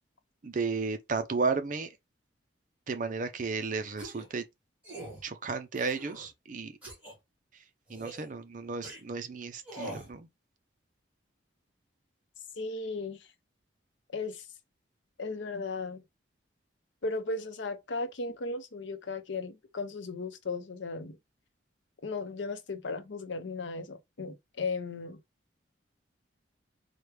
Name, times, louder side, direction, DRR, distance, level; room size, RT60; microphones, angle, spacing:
voice 1, 0.4-1.9 2.9-4.4 5.2-6.7 7.9-10.3, right 4 dB, 45° right, 0.5 m, -33 dB
sound 1, 4.0-4.3 4.8-5.2 5.8-6.3 6.8-7.1 7.9-8.3 8.8-9.0 9.6-10.1, right 1 dB, 10° right, 1.9 m, -43 dB
voice 2, 12.6-13.2 14.1-14.4 15.2-16.0 17.0-21.2 22.0-25.2, left 3 dB, 70° left, 0.7 m, -36 dB
4.6 x 2.2 x 3.2 m
head